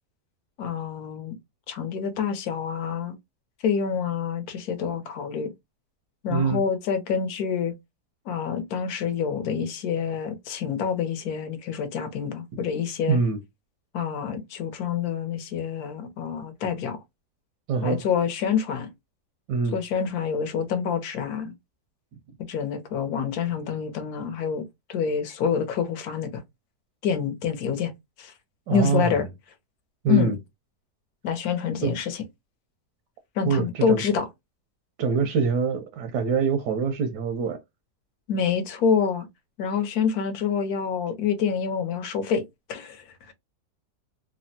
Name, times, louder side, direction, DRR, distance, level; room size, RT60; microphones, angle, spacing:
voice 1, 0.6-1.4 1.7-3.1 3.6-5.5 6.2-7.7 8.3-13.2 13.9-17.0 17.8-18.9 19.7-21.5 22.4-26.4 27.0-27.9 28.2-28.3 28.7-29.3 30.1-30.4 31.2-32.2 33.4-34.3 38.3-39.3 39.6-42.4 42.7-43.3, left 7 dB, 70° left, 1.1 m, -27 dB
voice 2, 6.3-6.6 13.1-13.4 17.7-18.0 19.5-19.8 28.7-29.1 30.0-30.4 31.8-31.9 33.4-34.0 35.0-37.6, right 5 dB, 80° right, 1.2 m, -24 dB
3.4 x 2.1 x 2.6 m
omnidirectional pair, 1.8 m